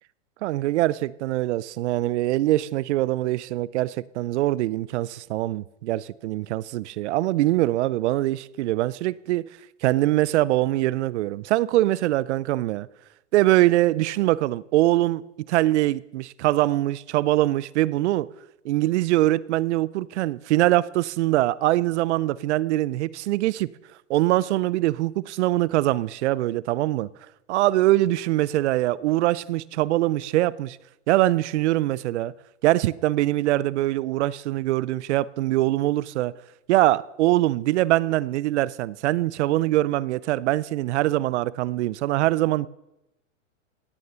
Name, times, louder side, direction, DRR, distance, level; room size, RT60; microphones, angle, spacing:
voice 1, 0.4-9.4 9.8-12.9 13.3-15.2 15.5-18.3 18.6-23.7 24.1-27.1 27.5-30.8 31.1-32.3 32.6-36.3 36.7-42.7, right 16 dB, 65° right, 0.6 m, -23 dB
17.0 x 9.4 x 5.6 m
hypercardioid pair, 125°, 38 cm